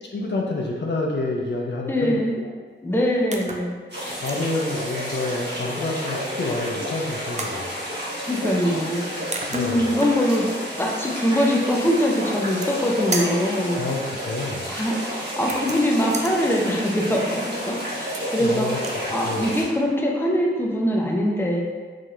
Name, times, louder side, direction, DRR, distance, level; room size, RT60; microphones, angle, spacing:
voice 1, 0.1-2.5 4.1-7.7 9.5-9.9 13.8-14.7 18.4-19.5, left 2 dB, 60° left, -1 dB, 0.6 m, -28 dB
voice 2, 1.9-2.3 2.8-3.7 8.2-9.0 9.5-10.5 10.8-13.8 14.7-18.7 19.1-21.6, equal, 10° left, -1 dB, 0.6 m, -23 dB
sound 1, 3.3-3.7 4.1-4.5 6.2-6.7 7.4-7.6 9.0-9.1 9.3-10.5 12.3-12.8 13.1-13.5 15.4-16.4 17.9-18.4 18.7-19.0, right 3 dB, 35° right, 0.4 m, -33 dB
sound 2, 3.9-19.6, equal, 55° right, 1.3 m, -31 dB
4.9 x 2.7 x 2.4 m, 1.5 s
cardioid pair, 60°, 20 cm